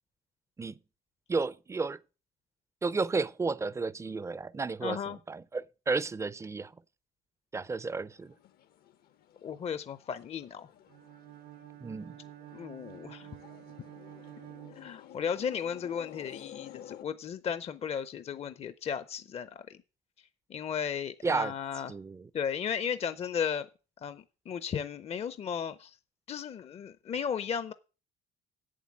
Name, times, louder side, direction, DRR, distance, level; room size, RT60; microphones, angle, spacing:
voice 1, 1.3-2.0 2.8-5.0 5.3-6.7 7.5-8.3 11.8-12.2 21.2-21.5 21.9-22.3, right 4 dB, 15° right, 0.5 m, -32 dB
voice 2, 4.8-5.2 9.4-10.7 12.5-13.3 14.7-19.8 20.5-21.9 22.3-23.7 24.0-26.0 26.3-27.7, left 7 dB, 40° left, 0.6 m, -35 dB
sound 1, 8.1-17.0, left 10 dB, 65° left, 0.8 m, -52 dB
Bowed string instrument, 10.9-15.5, right 14 dB, 60° right, 0.7 m, -50 dB
8.2 x 7.4 x 7.3 m
cardioid pair, 110°, 17 cm